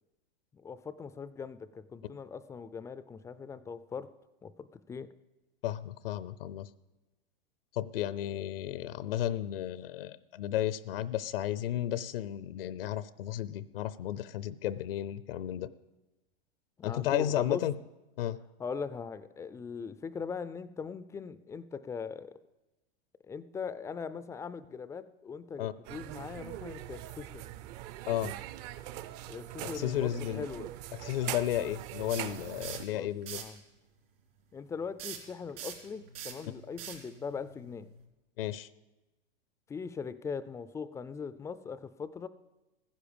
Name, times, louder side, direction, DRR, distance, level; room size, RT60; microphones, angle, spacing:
voice 1, 0.5-4.1 4.4-5.1 16.8-17.6 18.6-22.3 23.2-27.5 29.3-30.7 31.2-31.4 32.9-33.6 34.5-37.9 39.7-42.3, left 5 dB, 10° left, 15 dB, 0.4 m, -40 dB
voice 2, 5.6-6.7 7.7-15.7 16.8-17.7 18.2-18.4 25.6-25.7 28.1-28.3 29.6-30.4 30.9-33.4 38.4-38.7, left 12 dB, 75° left, 16 dB, 0.7 m, -33 dB
sound 1, 25.8-32.9, right 13 dB, 45° right, 0.6 m, -42 dB
sound 2, 32.1-32.9 33.2-33.6 35.0-38.0, right 9 dB, 70° right, 3.6 m, -43 dB
15.0 x 10.0 x 7.0 m, 1.1 s
hypercardioid pair, 130°, 29 cm